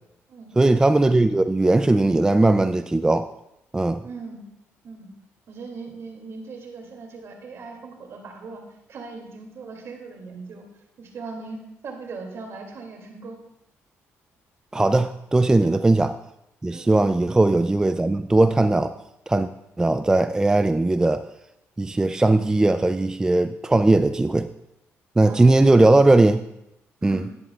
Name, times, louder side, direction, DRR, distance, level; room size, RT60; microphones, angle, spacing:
voice 1, 0.6-3.3 3.7-4.0 14.7-16.2 16.6-19.0 19.3-19.5 19.8-21.2 21.8-24.5 25.2-26.4 27.0-27.2, right 2 dB, 10° right, 10 dB, 0.3 m, -19 dB
voice 2, 4.0-4.4 4.8-5.1 5.5-8.6 8.9-10.7 11.0-13.4 15.6-15.8 16.7-16.9 25.2-25.5 27.0-27.3, right 4 dB, 60° right, 1 dB, 2.4 m, -39 dB
11.0 x 10.5 x 2.3 m, 0.84 s
cardioid pair, 85°, 5 cm